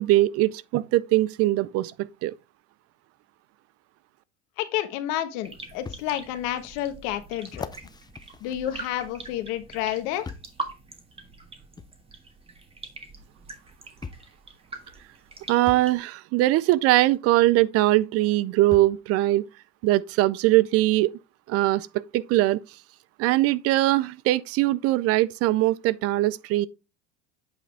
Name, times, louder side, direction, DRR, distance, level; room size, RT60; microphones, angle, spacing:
voice 1, 0.0-2.3 15.5-19.5 19.8-21.1 21.5-21.9 22.1-22.6 23.2-26.7, right 17 dB, 45° right, 0.5 m, -21 dB
voice 2, 4.6-7.7 8.4-10.3, left 12 dB, 60° left, 1.3 m, -30 dB
sound 1, 4.7-4.8 5.9-6.0 6.7-6.8 7.5-9.4 10.2-10.6 11.8-11.9 13.2-13.3 14.0-14.4 15.7-15.9 17.5-17.6 18.7-19.0 19.8-19.9, left 5 dB, 10° left, 0.6 m, -40 dB
sound 2, 5.4-16.0, right 3 dB, 15° right, 1.8 m, -43 dB
8.4 x 4.9 x 3.4 m
hypercardioid pair, 90°, 34 cm